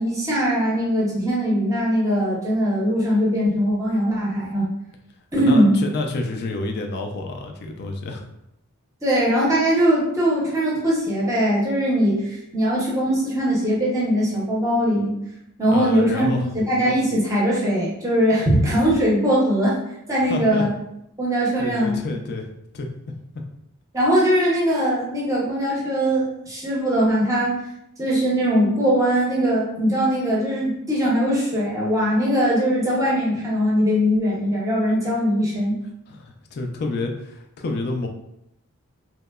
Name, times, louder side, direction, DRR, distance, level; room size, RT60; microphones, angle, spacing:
voice 1, 0.0-4.7 5.3-5.7 9.0-15.1 15.6-19.8 20.1-20.7 21.2-22.0 23.9-27.6 28.0-35.8, equal, 15° right, -6 dB, 0.6 m, -21 dB
voice 2, 5.4-8.3 15.7-16.5 20.2-20.7 21.6-22.5 22.7-22.9 36.1-38.1, left 2 dB, 45° left, 4 dB, 0.3 m, -28 dB
2.8 x 2.1 x 2.2 m, 0.81 s
head